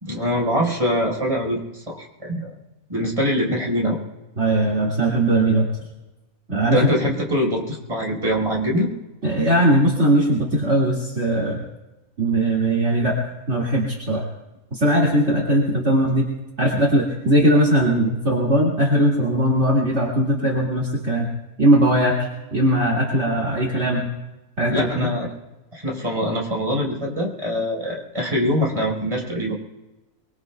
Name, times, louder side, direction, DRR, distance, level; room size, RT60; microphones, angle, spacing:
voice 1, 0.0-2.5 2.9-4.0 6.7-8.9 24.7-25.3 25.7-29.6, equal, 20° right, -3 dB, 4.8 m, -23 dB
voice 2, 4.4-5.7 6.5-6.9 9.2-11.6 12.2-13.2 13.5-14.2 14.7-16.3 16.6-21.3 21.6-24.1 24.6-25.1, right 1 dB, 50° right, -4 dB, 2.6 m, -19 dB
24.5 x 23.5 x 2.3 m, 1.1 s
omnidirectional pair, 1.5 m